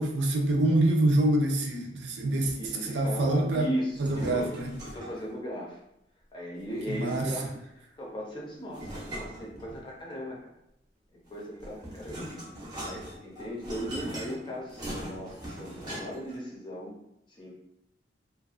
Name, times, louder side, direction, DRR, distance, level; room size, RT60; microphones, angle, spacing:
voice 1, 0.0-2.5 2.8-3.7 4.0-4.7 6.9-7.3, right 1 dB, 85° right, 2 dB, 0.5 m, -26 dB
voice 2, 2.5-4.5 4.8-5.8 6.3-10.4 11.3-16.9 17.3-17.5, equal, 25° left, -3 dB, 0.6 m, -37 dB
sound 1, 3.9-5.3 6.7-7.7 8.7-10.1 11.3-16.3, right 1 dB, 25° right, 0.7 m, -40 dB
2.5 x 2.2 x 2.4 m, 0.81 s
head